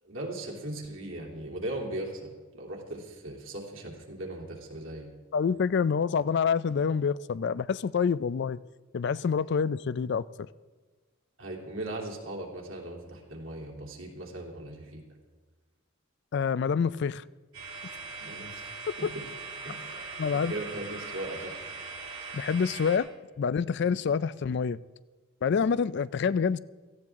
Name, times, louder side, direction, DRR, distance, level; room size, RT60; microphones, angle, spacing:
voice 1, 0.0-5.1 11.4-15.0 18.2-18.7 19.0-19.2 19.6-21.5, right 1 dB, 70° right, 3.1 m, -38 dB
voice 2, 5.3-8.6 8.9-10.5 16.3-17.2 18.9-19.1 20.2-20.5 22.3-23.1 23.4-24.8 25.4-26.6, left 6 dB, 55° left, 0.3 m, -27 dB
sound 1, 17.5-23.0, right 4 dB, 85° right, 5.5 m, -41 dB
17.5 x 15.0 x 3.6 m
head